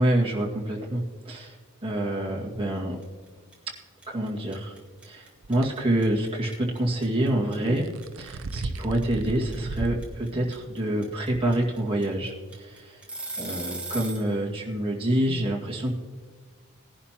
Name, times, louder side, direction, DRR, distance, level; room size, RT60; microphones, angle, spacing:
voice 1, 0.0-1.6 1.8-3.0 4.1-4.8 5.0-7.9 8.2-13.0 13.4-15.9, right 1 dB, 25° right, -3 dB, 2.1 m, -27 dB
sound 1, 3.0-3.3 3.5-14.3, right 3 dB, 5° right, 1.8 m, -37 dB
sound 2, 5.4-5.7 7.7-10.0 10.5-10.6 11.3-11.4, right 3 dB, 65° right, 0.6 m, -34 dB
19.0 x 11.0 x 3.0 m, 1.5 s
head